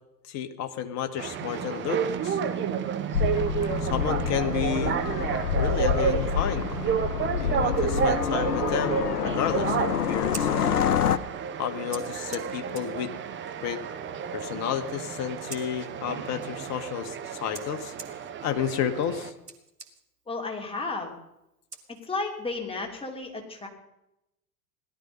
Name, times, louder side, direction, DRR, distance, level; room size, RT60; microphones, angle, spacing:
voice 1, 0.2-2.4 3.8-5.0 5.6-6.8 7.4-10.7 11.6-13.1 13.6-13.8 14.3-17.9 18.4-19.3, left 9 dB, 35° left, 8 dB, 1.5 m, -31 dB
sound 1, 1.2-19.3, right 7 dB, 25° right, 1.2 m, -31 dB
sound 2, 3.1-11.2, left 8 dB, 75° left, 0.8 m, -27 dB
Scissors, 10.1-22.5, right 4 dB, 85° right, 1.7 m, -49 dB
voice 2, 20.3-21.1 21.9-23.7, left 3 dB, 10° left, 1 dB, 3.0 m, -33 dB
17.0 x 12.5 x 5.3 m, 0.87 s
figure-of-eight pair, 85°, 46 cm